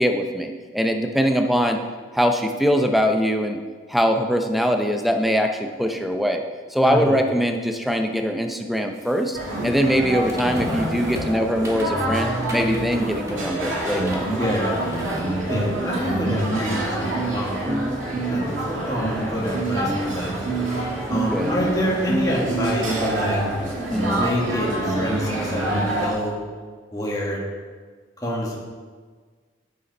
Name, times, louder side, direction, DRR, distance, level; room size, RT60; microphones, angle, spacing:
voice 1, 0.0-1.8 2.1-3.6 3.9-6.4 6.7-14.3 17.7-18.0 21.1-21.6 23.9-24.3, equal, ahead, 4 dB, 0.6 m, -22 dB
voice 2, 6.8-7.2 14.3-14.7 15.5-17.7 18.3-20.3 21.1-23.4 24.1-26.3 26.9-27.4 28.2-28.6, equal, 20° left, -4 dB, 1.7 m, -27 dB
sound 1, 9.1-9.3 10.3-12.1 12.4-14.4 14.7-15.2, equal, 15° right, 1.2 m, -34 dB
sound 2, 9.3-26.1, right 1 dB, 85° right, 2.4 m, -26 dB
9.3 x 7.0 x 5.3 m, 1.5 s
head